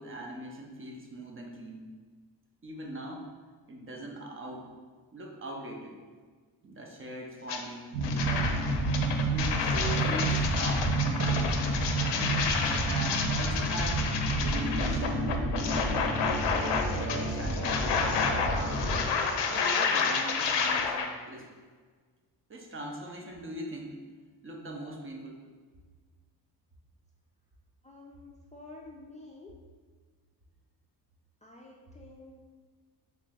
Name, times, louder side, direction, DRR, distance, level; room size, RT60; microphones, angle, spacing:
voice 1, 0.0-1.8 2.6-3.3 3.7-4.7 5.1-6.0 6.6-8.6 9.3-11.6 12.6-15.4 16.4-18.7 19.5-21.5 22.5-24.0 24.4-25.4, right 1 dB, 30° right, 0 dB, 0.6 m, -41 dB
sound 1, 7.5-7.6 8.0-21.1, left 5 dB, 80° left, 0.5 m, -30 dB
sound 2, 7.9-19.0, right 2 dB, 60° right, 0.8 m, -30 dB
voice 2, 27.8-29.5 31.4-32.4, left 2 dB, 20° left, -3 dB, 0.4 m, -50 dB
3.1 x 2.9 x 3.5 m, 1.5 s
cardioid pair, 90°, 42 cm